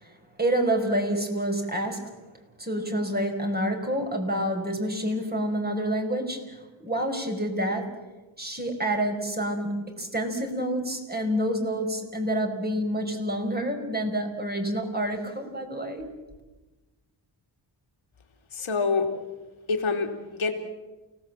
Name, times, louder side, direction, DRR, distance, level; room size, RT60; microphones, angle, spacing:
voice 1, 0.0-2.1 2.6-8.0 8.4-16.1, right 1 dB, 20° right, 3 dB, 5.4 m, -28 dB
voice 2, 18.5-19.1 19.7-20.5, left 4 dB, 85° left, 4 dB, 3.2 m, -26 dB
29.5 x 18.0 x 7.6 m, 1.1 s
cardioid pair, 75°, 47 cm